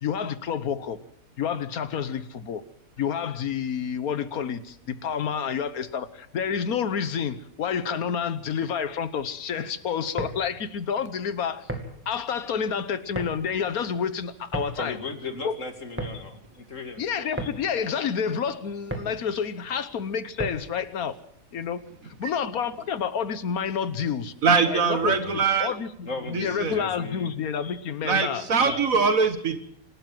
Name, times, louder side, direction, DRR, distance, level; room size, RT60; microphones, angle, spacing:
voice 1, 0.0-1.0 1.4-2.6 3.0-11.7 12.0-15.0 15.4-15.5 16.1-16.2 17.0-21.2 21.5-24.3 24.7-28.8, left 7 dB, 85° left, 1.5 m, -29 dB
sound 1, 10.0-20.8, right 1 dB, 10° right, 2.4 m, -38 dB
voice 2, 14.8-17.0 25.0-25.3 26.1-27.3, left 3 dB, 60° left, 2.6 m, -36 dB
voice 3, 24.4-25.7 26.3-26.8 28.0-29.6, right 5 dB, 70° right, 2.1 m, -22 dB
26.5 x 12.5 x 7.8 m
omnidirectional pair, 1.5 m